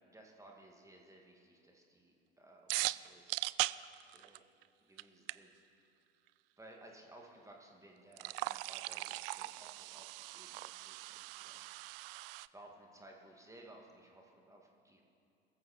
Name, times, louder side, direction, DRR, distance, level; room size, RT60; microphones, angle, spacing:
voice 1, 0.1-3.5 4.1-4.4 4.8-5.5 6.6-12.1 12.5-15.0, right 1 dB, 10° right, 0 dB, 2.2 m, -58 dB
sound 1, 2.7-4.6 5.0-5.1 5.3-5.4 8.1-12.5, right 19 dB, 60° right, 0.4 m, -39 dB
22.5 x 14.0 x 4.4 m, 2.6 s
figure-of-eight pair, 70°, 32 cm